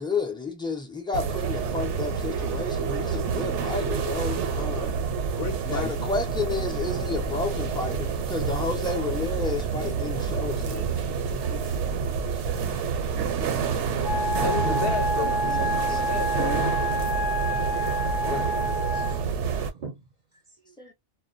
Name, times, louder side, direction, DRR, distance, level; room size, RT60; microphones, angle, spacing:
voice 1, 0.0-5.1 5.6-11.0 11.5-11.6 14.4-14.9 15.6-16.0 16.4-17.0 18.2-18.5 20.8-20.9, left 3 dB, 5° left, 0.4 m, -32 dB
sound 1, 1.1-19.7, right 6 dB, 80° right, 0.9 m, -28 dB
voice 2, 5.3-6.0 14.4-17.6, left 6 dB, 60° left, 0.7 m, -34 dB
Wind instrument woodwind instrument, 14.0-19.2, right 1 dB, 90° left, 0.9 m, -28 dB
voice 3, 18.9-20.9, right 4 dB, 50° right, 0.5 m, -48 dB
2.2 x 2.2 x 2.5 m
omnidirectional pair, 1.2 m